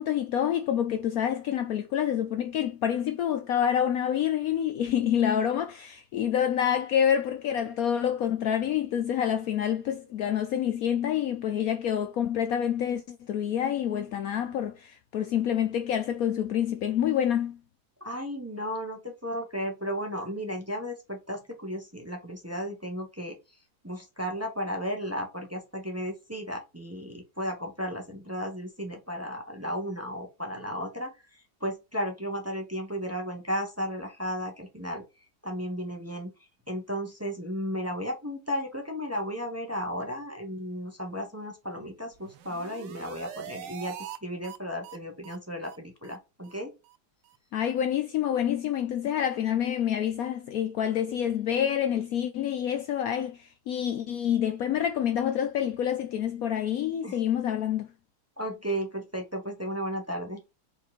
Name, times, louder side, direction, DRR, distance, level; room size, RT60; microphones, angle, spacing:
voice 1, 0.0-17.6 47.5-57.9, left 9 dB, 70° left, 0.9 m, -27 dB
voice 2, 18.0-23.3 23.8-31.2 31.6-35.0 35.4-36.3 36.7-46.7 57.0-57.2 58.4-60.4, equal, 10° right, 1.1 m, -34 dB
sound 1, 42.1-44.2 44.4-44.6 44.8-45.0 45.2-45.4 45.6-45.8 46.0-46.2 46.4-46.6 46.8-47.0 47.3-47.4, right 9 dB, 90° right, 1.4 m, -43 dB
5.1 x 4.4 x 4.1 m
omnidirectional pair, 1.8 m